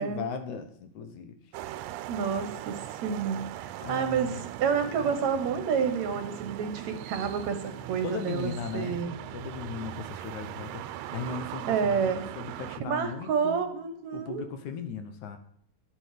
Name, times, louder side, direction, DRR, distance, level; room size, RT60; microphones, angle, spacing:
voice 1, 0.0-1.4 2.3-2.5 3.8-4.4 8.0-10.9 11.1-13.8 14.1-15.4, left 6 dB, 70° left, 8 dB, 2.2 m, -37 dB
sound 1, 1.5-12.8, right 13 dB, 80° right, 2.3 m, -40 dB
voice 2, 2.1-9.1 11.7-12.3 12.8-14.4, right 6 dB, 65° right, 8 dB, 2.0 m, -29 dB
11.0 x 8.3 x 6.7 m, 0.68 s
omnidirectional pair, 4.0 m